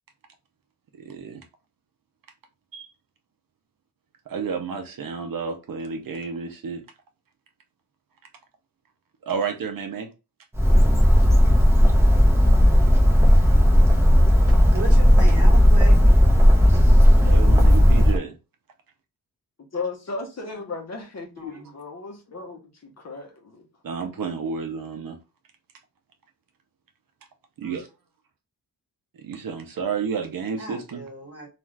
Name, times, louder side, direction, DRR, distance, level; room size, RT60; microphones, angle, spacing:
voice 1, 1.0-1.4 2.7-2.9 4.3-6.8 9.2-10.1 17.2-18.3 23.8-25.2 27.6-27.9 29.2-31.0, right 5 dB, 65° right, 0.6 m, -31 dB
Bird, 10.5-18.2, equal, 5° right, 0.7 m, -15 dB
voice 2, 14.5-16.0 21.4-21.7 30.6-31.5, right 1 dB, 40° right, 1.2 m, -35 dB
voice 3, 19.7-23.7, left 4 dB, 45° left, 0.8 m, -35 dB
2.5 x 2.3 x 3.1 m
wide cardioid pair, 150°, 37 cm